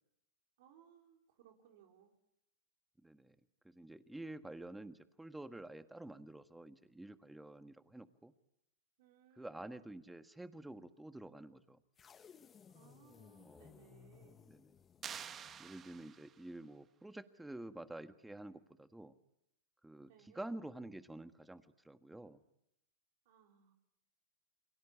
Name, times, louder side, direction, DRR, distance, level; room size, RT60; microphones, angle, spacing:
voice 1, 0.6-2.1 9.0-9.7 12.7-14.4 20.1-20.5 23.2-23.7, right 9 dB, 65° right, 2 dB, 4.3 m, -65 dB
voice 2, 3.0-3.3 3.6-8.3 9.4-11.8 13.4-13.7 14.5-14.7 15.6-19.1 19.8-22.4, right 1 dB, 5° right, 10 dB, 1.6 m, -49 dB
sound 1, 12.0-16.2, left 7 dB, 25° left, 1.3 m, -61 dB
sound 2, 15.0-16.5, right 8 dB, 30° right, 1.5 m, -48 dB
29.5 x 23.5 x 8.6 m, 0.82 s
hypercardioid pair, 110°, 0 cm